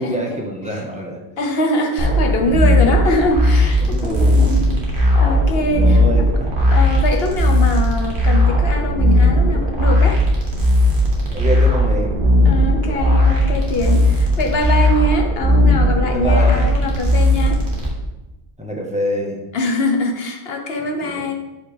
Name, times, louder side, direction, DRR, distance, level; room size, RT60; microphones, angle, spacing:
voice 1, 0.0-1.2 2.7-2.8 3.8-4.9 5.7-6.7 11.3-12.2 13.4-14.1 16.1-16.8 18.6-19.4 21.0-21.2, equal, 5° right, -1 dB, 1.4 m, -26 dB
voice 2, 1.4-4.7 4.9-6.0 6.7-10.2 12.4-17.6 19.5-21.3, left 1 dB, 60° left, 3 dB, 1.3 m, -23 dB
sound 1, 2.0-17.9, left 1 dB, 50° right, 2.0 m, -16 dB
12.5 x 5.5 x 3.5 m, 1.0 s
omnidirectional pair, 1.2 m